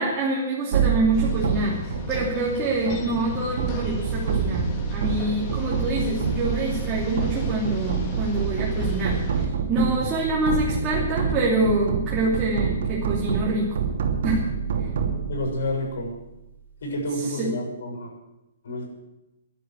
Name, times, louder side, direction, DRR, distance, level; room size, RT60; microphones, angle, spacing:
voice 1, 0.0-13.7 14.2-14.4 17.3-17.5, right 2 dB, 20° right, -4 dB, 2.9 m, -26 dB
sound 1, 0.7-16.0, right 6 dB, 60° right, 2.8 m, -27 dB
sound 2, 1.1-9.5, left 4 dB, 30° left, 2.7 m, -37 dB
voice 2, 15.3-16.1 16.8-18.1 18.6-18.9, left 1 dB, 70° left, 1 dB, 6.9 m, -29 dB
12.0 x 11.5 x 9.2 m, 0.94 s
hypercardioid pair, 160°, 0 cm